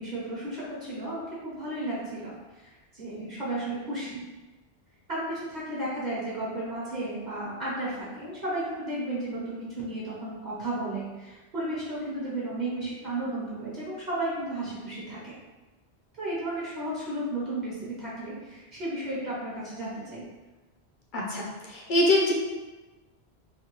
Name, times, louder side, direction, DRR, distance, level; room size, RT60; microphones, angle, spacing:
voice 1, 0.0-4.2 5.1-15.4 16.2-20.3, right 1 dB, 45° right, -8 dB, 0.9 m, -33 dB
voice 2, 21.1-22.3, left 1 dB, 60° left, -2 dB, 0.6 m, -24 dB
3.3 x 2.2 x 2.9 m, 1.2 s
omnidirectional pair, 1.1 m